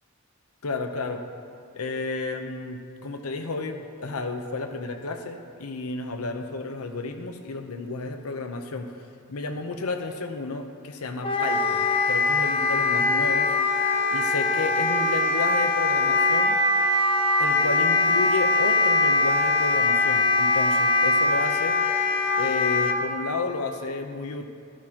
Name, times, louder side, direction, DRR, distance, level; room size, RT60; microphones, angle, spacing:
voice 1, 0.6-1.2 1.7-8.9 9.3-13.5 14.1-16.6 17.4-21.8 22.3-24.4, left 3 dB, 80° left, 6 dB, 0.8 m, -32 dB
Wind instrument woodwind instrument, 11.2-23.0, left 3 dB, 25° left, 0.7 m, -22 dB
13.0 x 12.0 x 2.9 m, 2.3 s
head